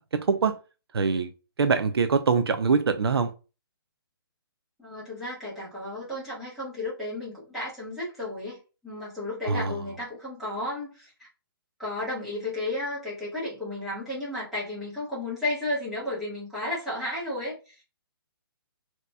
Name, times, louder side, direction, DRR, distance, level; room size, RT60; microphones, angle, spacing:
voice 1, 0.1-0.6 0.9-1.3 1.6-3.3 9.4-9.8, right 5 dB, 85° right, 0.6 m, -24 dB
voice 2, 4.8-11.3 11.8-17.8, left 1 dB, ahead, 1.6 m, -33 dB
4.0 x 2.9 x 2.3 m
hypercardioid pair, 165°, 13 cm